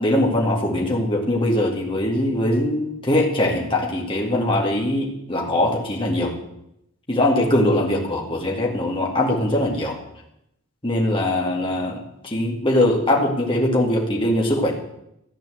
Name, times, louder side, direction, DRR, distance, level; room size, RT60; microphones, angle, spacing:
voice 1, 0.0-6.3 7.1-10.0 10.8-12.0 12.2-14.7, left 1 dB, 25° left, -1 dB, 2.3 m, -21 dB
14.5 x 9.1 x 7.7 m, 0.81 s
head